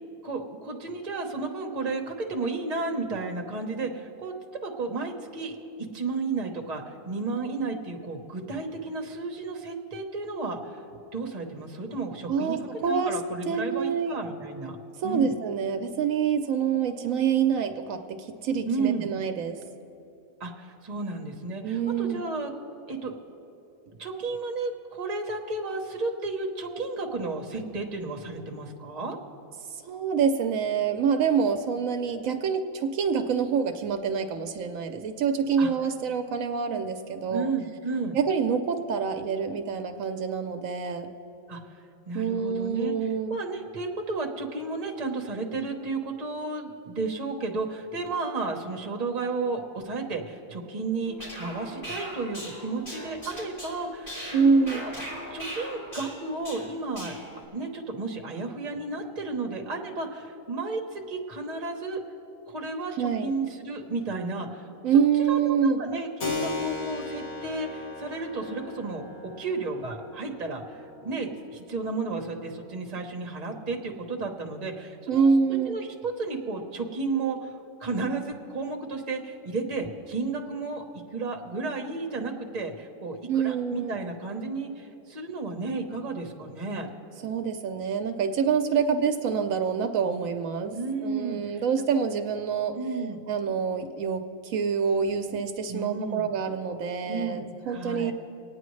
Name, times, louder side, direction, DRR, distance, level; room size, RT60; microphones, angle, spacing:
voice 1, 0.2-4.3 4.6-5.5 5.9-10.8 11.1-14.8 15.0-15.3 18.7-19.1 20.4-22.5 22.9-23.1 24.0-29.2 35.6-35.7 37.3-38.2 41.5-41.6 42.1-42.9 43.3-54.9 55.3-57.1 57.5-62.0 62.5-64.7 65.3-75.3 75.7-77.5 77.8-80.8 81.1-86.9 90.7-91.6 92.7-93.2 95.7-96.3 97.1-98.1, right 3 dB, 35° right, 2 dB, 1.0 m, -33 dB
voice 2, 12.3-12.6 12.8-13.2 13.5-14.2 15.0-19.6 21.6-22.2 29.7-37.5 38.1-41.1 42.1-43.4 54.3-54.8 63.0-63.3 64.8-65.8 75.1-75.8 83.3-84.0 87.2-92.8 93.3-98.1, right 6 dB, 75° right, 7 dB, 1.0 m, -26 dB
sound 1, 51.0-57.4, equal, 40° left, 3.0 m, -39 dB
Keyboard (musical), 66.2-74.4, left 3 dB, 90° left, 1.7 m, -39 dB
25.5 x 9.2 x 3.2 m, 2.8 s
omnidirectional pair, 1.4 m